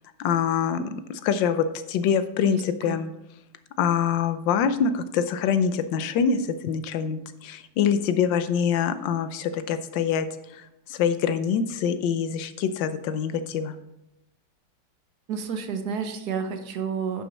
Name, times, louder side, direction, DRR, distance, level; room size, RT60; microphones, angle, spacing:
voice 1, 0.2-3.1 3.8-13.7, left 7 dB, 75° left, 11 dB, 1.3 m, -25 dB
voice 2, 2.5-3.0 15.3-17.2, right 6 dB, 60° right, 7 dB, 1.3 m, -30 dB
10.5 x 6.0 x 4.1 m, 0.87 s
omnidirectional pair, 2.1 m